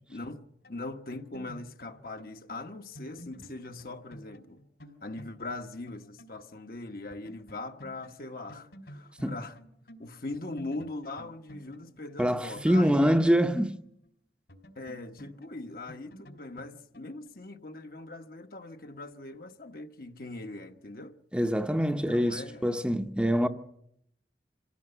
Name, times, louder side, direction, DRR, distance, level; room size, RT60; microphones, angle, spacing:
voice 1, 0.1-4.6 5.0-9.6 10.0-13.2 14.8-21.1 22.1-22.6, left 2 dB, 55° left, 1.2 m, -41 dB
sound 1, 0.6-6.4 6.7-6.8 7.1-10.0 10.3-14.1 14.5-17.3, equal, 75° left, 3.8 m, -51 dB
voice 2, 12.2-13.8 21.3-23.5, equal, 5° right, 0.8 m, -25 dB
26.0 x 17.0 x 7.9 m
head